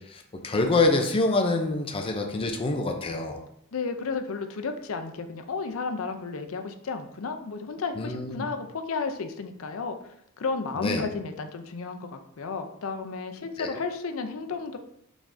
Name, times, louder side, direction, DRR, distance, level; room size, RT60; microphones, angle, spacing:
voice 1, 0.1-3.4 8.0-8.5 10.8-11.0 13.6-13.8, left 2 dB, 25° left, 3 dB, 0.5 m, -26 dB
voice 2, 3.7-9.9 10.4-14.8, left 4 dB, 70° left, 7 dB, 0.5 m, -33 dB
5.1 x 3.6 x 2.6 m, 0.73 s
head